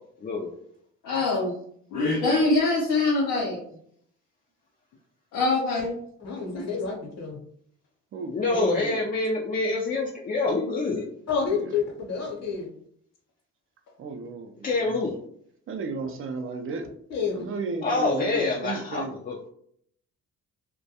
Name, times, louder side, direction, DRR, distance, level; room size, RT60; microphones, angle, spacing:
voice 1, 0.2-0.5 8.3-11.1 14.6-15.1 17.8-19.5, left 3 dB, 30° left, -2 dB, 0.4 m, -26 dB
voice 2, 1.0-1.5 1.9-3.6 5.3-5.9 6.4-6.6 8.5-9.0, left 2 dB, 80° left, -4 dB, 0.6 m, -24 dB
voice 3, 6.2-7.4 11.3-12.7 17.1-17.5, left 5 dB, 60° left, -1 dB, 0.9 m, -29 dB
voice 4, 14.0-15.0 15.7-16.9 17.3-19.2, right 4 dB, 45° right, 5 dB, 0.4 m, -34 dB
2.2 x 2.2 x 2.7 m, 0.65 s
cardioid pair, 90°, 30 cm